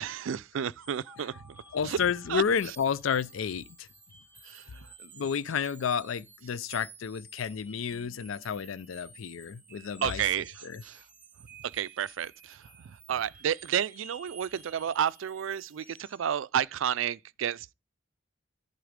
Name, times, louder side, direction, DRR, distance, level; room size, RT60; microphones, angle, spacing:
voice 1, 0.0-1.6 1.9-2.0 2.3-2.4 4.5-4.6 10.0-10.5 10.8-11.0 11.7-12.6 13.1-17.7, right 9 dB, 75° right, 0.4 m, -31 dB
sound 1, 0.8-16.3, right 4 dB, 10° right, 1.9 m, -53 dB
voice 2, 1.7-3.9 5.0-10.2 10.6-10.8, left 7 dB, 85° left, 0.4 m, -31 dB
11.0 x 4.0 x 5.0 m
head